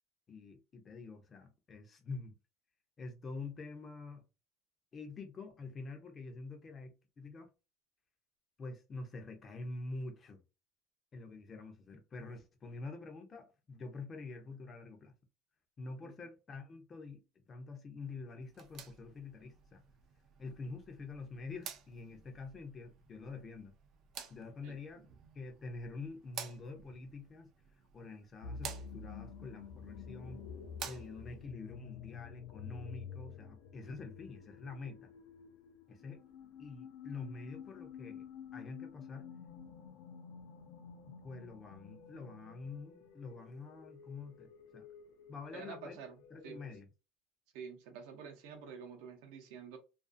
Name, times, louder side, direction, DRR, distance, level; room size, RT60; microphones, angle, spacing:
voice 1, 0.3-2.4 3.0-4.2 4.9-7.5 8.6-10.4 11.1-15.1 15.8-19.8 20.4-23.7 24.3-25.1 25.3-27.5 27.9-30.4 30.8-35.1 35.9-36.2 36.6-38.3 38.5-39.3 41.2-44.9 45.3-46.0 46.3-46.9, left 3 dB, 20° left, 0.5 m, -46 dB
sound 1, 18.4-31.5, right 7 dB, 35° right, 0.4 m, -52 dB
sound 2, 28.4-46.8, left 6 dB, 75° left, 0.5 m, -50 dB
voice 2, 45.5-46.2 46.4-46.6 47.5-49.8, right 6 dB, 70° right, 0.6 m, -48 dB
2.4 x 2.4 x 2.5 m
cardioid pair, 170°, 0 cm